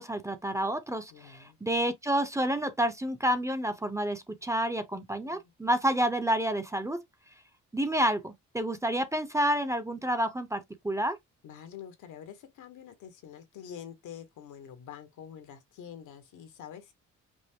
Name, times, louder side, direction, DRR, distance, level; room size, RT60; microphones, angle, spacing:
voice 1, 0.0-7.0 7.7-11.2, right 1 dB, 10° right, 0.7 m, -29 dB
voice 2, 1.1-1.6 5.2-5.4 11.4-16.9, left 9 dB, 80° left, 1.4 m, -46 dB
5.2 x 2.1 x 3.6 m
cardioid pair, 90°, 30 cm